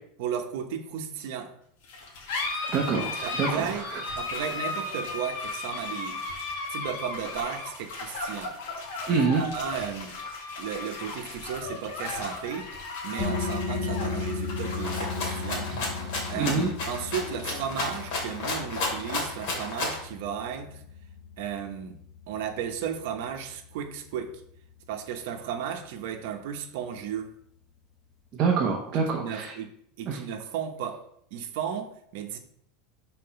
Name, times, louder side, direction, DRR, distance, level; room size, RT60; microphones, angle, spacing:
voice 1, 0.2-1.5 3.2-3.9 4.2-6.3 6.7-8.6 9.1-10.2 10.6-12.7 13.0-15.7 16.3-20.8 21.4-22.0 22.3-24.4 24.9-27.3 28.9-31.0 31.3-32.4, right 8 dB, 55° right, 4 dB, 1.1 m, -34 dB
sound 1, 1.8-18.8, left 3 dB, 65° left, 1.9 m, -36 dB
voice 2, 2.7-4.0 9.1-9.4 16.3-16.7 28.3-29.5 30.1-30.2, right 5 dB, 25° right, -1 dB, 0.9 m, -26 dB
sound 2, 13.2-24.6, left 4 dB, 10° left, 0.9 m, -36 dB
Rattle (instrument), 14.8-20.1, left 2 dB, 45° left, 2.6 m, -32 dB
6.0 x 4.3 x 5.8 m, 0.68 s
supercardioid pair, 180°, 0 cm